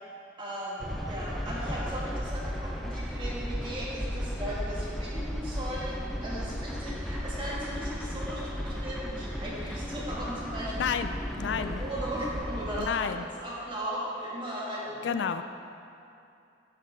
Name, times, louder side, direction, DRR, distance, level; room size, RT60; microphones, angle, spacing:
voice 1, 0.4-10.9 11.4-15.2, equal, 25° right, -8 dB, 2.2 m, -37 dB
sound 1, 0.8-12.9, equal, ahead, 0.5 m, -35 dB
voice 2, 10.8-11.8 12.8-13.2 15.0-15.4, left 7 dB, 65° left, 10 dB, 0.3 m, -30 dB
11.5 x 6.8 x 3.7 m, 2.6 s
head